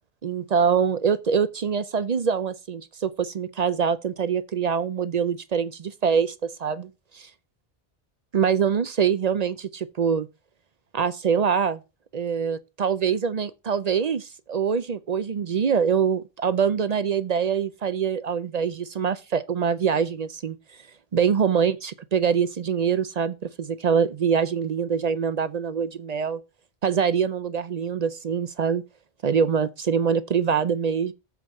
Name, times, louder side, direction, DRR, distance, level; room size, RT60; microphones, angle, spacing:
voice 1, 0.2-6.9 8.3-10.3 10.9-11.8 12.1-20.6 21.1-26.4 26.8-28.8 29.2-31.1, right 7 dB, 50° right, 0.6 m, -24 dB
7.5 x 4.6 x 6.3 m
omnidirectional pair, 1.0 m